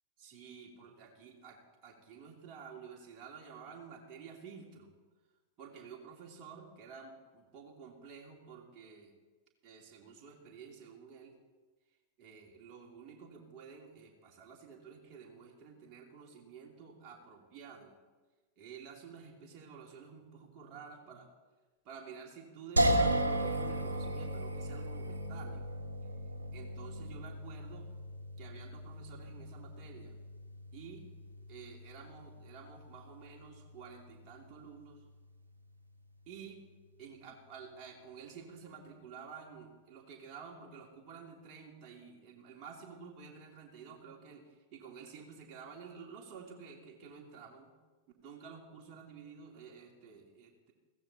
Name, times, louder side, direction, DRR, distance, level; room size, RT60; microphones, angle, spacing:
voice 1, 0.2-4.9 5.6-9.1 9.6-11.4 12.2-17.9 18.6-21.3 21.8-25.7 26.5-27.9 28.4-30.2 30.7-31.1 31.5-35.0 36.3-36.6 37.0-47.7 48.2-50.7, right 6 dB, 35° right, 0 dB, 2.9 m, -51 dB
sound 1, 22.8-35.8, right 1 dB, 80° right, 1.3 m, -36 dB
16.0 x 14.5 x 4.3 m, 1.3 s
figure-of-eight pair, 90°, 0 cm